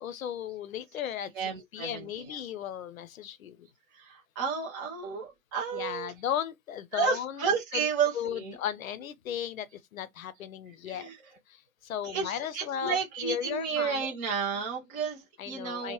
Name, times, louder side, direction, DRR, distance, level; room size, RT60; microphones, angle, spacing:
voice 1, 0.0-3.7 5.7-7.4 7.7-7.9 8.1-11.1 11.5-13.0 13.2-14.1 15.4-15.9, left 9 dB, 75° left, 0.6 m, -36 dB
voice 2, 1.4-2.3 3.9-6.1 6.9-8.6 10.8-11.2 12.0-15.9, right 6 dB, 15° right, 0.4 m, -32 dB
3.1 x 2.0 x 2.8 m
hypercardioid pair, 120°, 41 cm